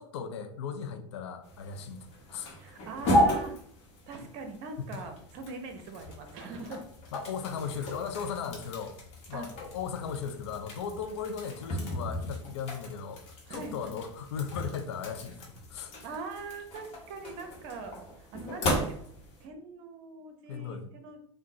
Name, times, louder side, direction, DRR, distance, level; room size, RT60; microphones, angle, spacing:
voice 1, 0.0-2.1 2.3-2.5 4.8-4.9 7.1-9.0 9.3-13.2 13.5-15.9 20.5-20.9, left 7 dB, 60° left, 7 dB, 0.4 m, -37 dB
sound 1, 1.4-19.5, equal, 40° left, 1.0 m, -35 dB
voice 2, 2.6-3.5 4.1-6.8 7.8-7.9 9.3-9.5 13.5-14.0 16.0-19.1 19.4-21.2, right 3 dB, 50° right, 6 dB, 0.7 m, -42 dB
3.6 x 2.1 x 2.7 m, 0.62 s
figure-of-eight pair, 80°, 16 cm